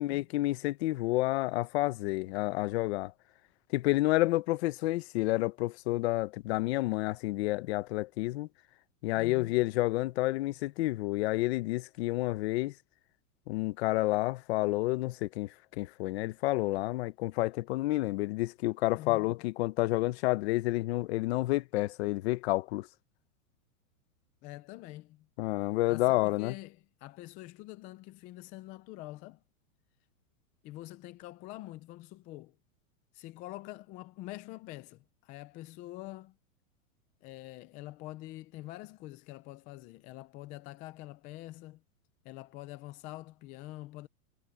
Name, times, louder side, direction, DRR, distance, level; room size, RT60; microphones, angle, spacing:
voice 1, 0.0-3.1 3.7-8.5 9.0-12.7 13.5-22.9 25.4-26.5, left 19 dB, 50° left, 1.0 m, -30 dB
voice 2, 9.2-9.6 19.0-19.3 24.4-25.3 25.9-29.4 30.6-32.6 33.1-36.4 37.2-41.8 42.2-44.1, left 17 dB, 20° left, 0.4 m, -46 dB
supercardioid pair, 155°, 42 cm